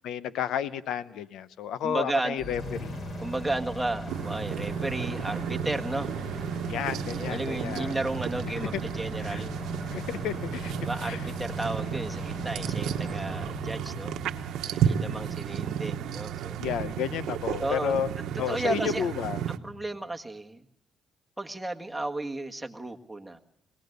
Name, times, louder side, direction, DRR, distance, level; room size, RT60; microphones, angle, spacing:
voice 1, 0.0-2.9 6.7-7.9 8.6-8.7 9.3-9.4 9.9-10.7 11.0-11.2 16.6-18.1 18.4-19.4, left 9 dB, 80° left, 14 dB, 0.7 m, -31 dB
voice 2, 1.8-2.4 3.2-6.1 7.1-9.6 10.8-14.1 14.6-16.7 17.6-18.0 18.5-19.1 19.5-20.6 21.4-23.4, right 2 dB, 5° right, 3 dB, 1.6 m, -33 dB
sound 1, 2.4-16.3, equal, 50° left, 6.4 m, -38 dB
sound 2, 4.1-19.6, right 9 dB, 85° right, 1.0 m, -33 dB
22.5 x 18.5 x 6.6 m, 0.78 s
cardioid pair, 90°, 0 cm